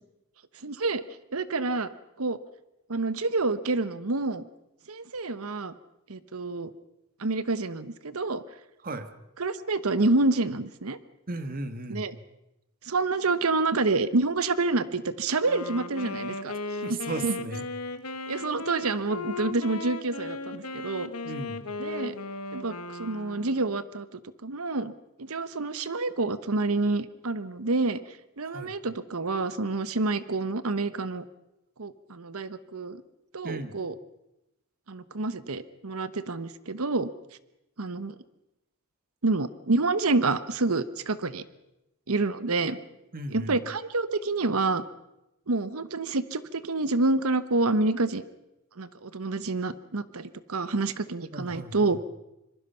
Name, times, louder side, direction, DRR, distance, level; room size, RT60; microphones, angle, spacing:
voice 1, 0.6-1.0 1.3-1.9 2.2-2.4 2.9-4.4 4.9-5.7 6.1-6.7 7.2-8.4 9.4-11.0 11.9-12.2 12.8-16.5 17.2-17.4 18.3-21.1 21.8-22.1 22.5-24.9 25.2-28.0 28.4-31.2 31.8-33.0 33.3-33.9 34.9-37.1 37.8-38.2 39.2-41.4 42.1-42.8 43.3-44.8 45.5-48.2 48.8-52.0, right 3 dB, 70° right, 15 dB, 1.0 m, -28 dB
voice 2, 11.3-12.1 16.8-17.7 21.2-21.7 28.5-28.7 33.4-33.8 42.7-42.8 43.1-43.6 51.3-52.0, right 2 dB, 40° right, 10 dB, 1.6 m, -36 dB
Wind instrument woodwind instrument, 15.4-23.7, left 2 dB, 85° left, 1.6 m, -36 dB
26.0 x 22.5 x 5.7 m, 0.91 s
head